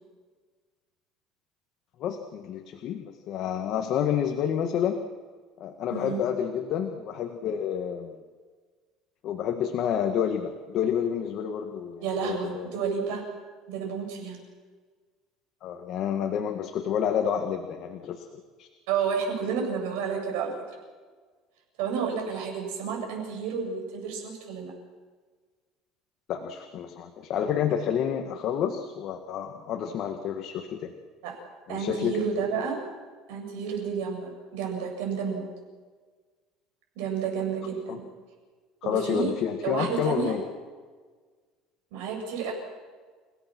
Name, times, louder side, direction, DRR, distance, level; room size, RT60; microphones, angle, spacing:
voice 1, 2.0-5.0 5.6-8.2 9.2-12.7 15.6-18.7 26.3-30.9 31.7-32.3 37.9-38.0 38.8-40.4, left 8 dB, 45° left, 4 dB, 1.7 m, -29 dB
voice 2, 5.9-6.2 12.0-13.2 13.7-14.4 18.9-20.5 21.8-24.7 31.2-31.4 31.7-32.8 33.3-35.4 37.0-38.1 38.8-39.4 39.6-40.4 41.9-42.5, right 6 dB, 85° right, 2 dB, 7.5 m, -30 dB
30.0 x 17.0 x 6.2 m, 1.5 s
cardioid pair, 155°, 0 cm